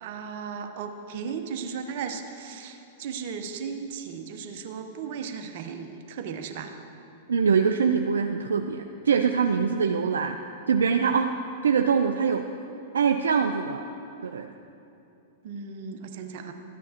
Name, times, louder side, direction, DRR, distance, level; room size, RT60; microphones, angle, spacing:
voice 1, 0.0-6.7 15.4-16.5, right 6 dB, 55° right, 5 dB, 0.9 m, -36 dB
voice 2, 7.3-10.4 10.7-11.3 11.6-12.4 12.9-13.9 14.2-14.5, right 6 dB, 80° right, 5 dB, 0.4 m, -23 dB
13.5 x 9.3 x 2.9 m, 2.8 s
hypercardioid pair, 105°, 0 cm